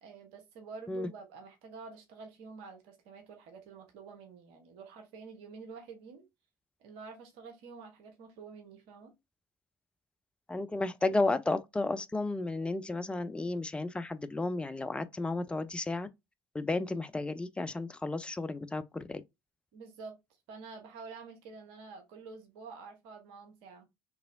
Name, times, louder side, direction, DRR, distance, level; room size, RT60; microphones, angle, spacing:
voice 1, 0.0-6.3 6.8-9.1 19.7-20.2 20.5-23.9, right 4 dB, 60° right, 0.9 m, -48 dB
voice 2, 10.5-16.1 16.5-19.2, left 2 dB, 10° left, 0.3 m, -33 dB
3.0 x 2.7 x 2.5 m
figure-of-eight pair, 60°, 11 cm